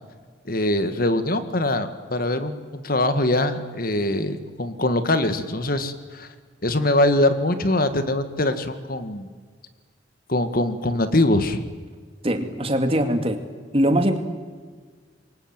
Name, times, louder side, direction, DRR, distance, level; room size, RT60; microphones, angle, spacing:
voice 1, 0.5-6.3 6.6-9.3 10.3-11.7, left 1 dB, 50° left, 10 dB, 1.8 m, -23 dB
voice 2, 12.2-13.4 13.7-14.2, equal, 30° right, 7 dB, 2.5 m, -21 dB
28.0 x 23.0 x 9.0 m, 1.5 s
head